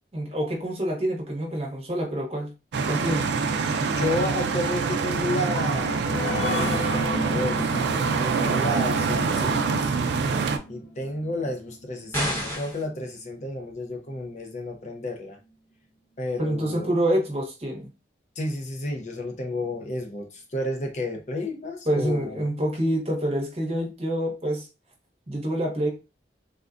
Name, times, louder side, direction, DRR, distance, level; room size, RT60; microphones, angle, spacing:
voice 1, 0.1-2.5 2.9-3.2 16.4-17.9 21.9-24.7 25.3-25.9, right 1 dB, 35° right, 0.9 m, -26 dB
sound 1, 2.7-10.6, right 5 dB, 75° right, 0.4 m, -25 dB
voice 2, 3.9-6.0 6.4-7.6 8.1-9.9 10.7-15.4 16.2-16.9 18.4-22.4, left 2 dB, 40° left, 0.5 m, -31 dB
sound 2, 5.5-12.5 12.9-13.0 13.4-13.5, left 1 dB, 80° left, 0.7 m, -33 dB
sound 3, 12.1-12.9, equal, 15° left, 0.9 m, -28 dB
3.5 x 2.1 x 2.4 m
head